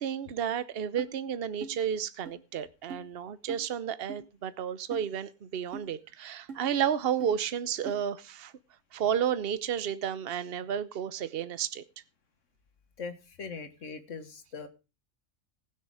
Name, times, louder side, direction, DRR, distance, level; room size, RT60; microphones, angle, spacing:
voice 1, 0.0-8.5 8.9-11.8, right 9 dB, 55° right, 1.0 m, -32 dB
sound 1, 1.0-1.1 1.6-1.8 2.2-2.3 2.9-3.0 3.5-3.6 4.1-4.2 4.9-5.1 5.7-5.9 6.5-6.6 7.2-7.3 7.8-8.0, right 5 dB, 75° right, 2.4 m, -41 dB
voice 2, 13.0-14.7, left 5 dB, 75° left, 1.8 m, -41 dB
19.0 x 6.5 x 4.8 m
omnidirectional pair, 1.3 m